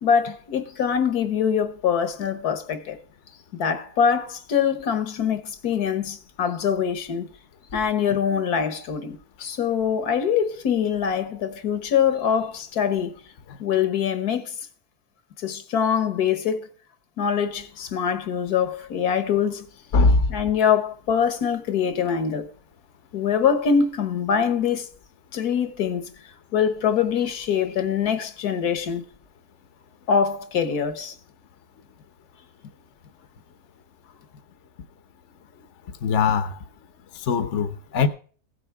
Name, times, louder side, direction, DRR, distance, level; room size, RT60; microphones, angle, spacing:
voice 1, 0.0-3.0 3.6-7.3 7.7-13.2 13.6-14.5 15.4-16.7 17.2-19.6 20.3-22.5 23.1-24.9 25.3-26.1 26.5-29.0 30.1-31.1, left 7 dB, 70° left, 1.6 m, -24 dB
voice 2, 19.9-20.3 36.0-36.5 37.3-38.1, left 4 dB, 50° left, 1.1 m, -20 dB
15.5 x 7.9 x 4.7 m
omnidirectional pair, 1.7 m